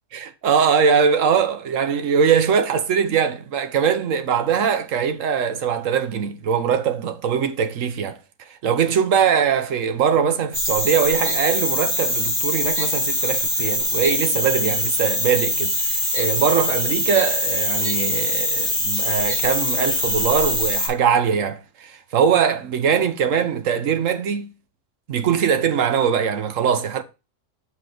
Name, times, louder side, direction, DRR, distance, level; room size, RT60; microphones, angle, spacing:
voice 1, 0.1-8.2 8.6-24.5 25.1-27.0, right 7 dB, 75° right, 1.2 m, -21 dB
sound 1, 10.5-20.9, left 1 dB, 30° right, 3.3 m, -23 dB
6.8 x 5.4 x 3.9 m
omnidirectional pair, 1.4 m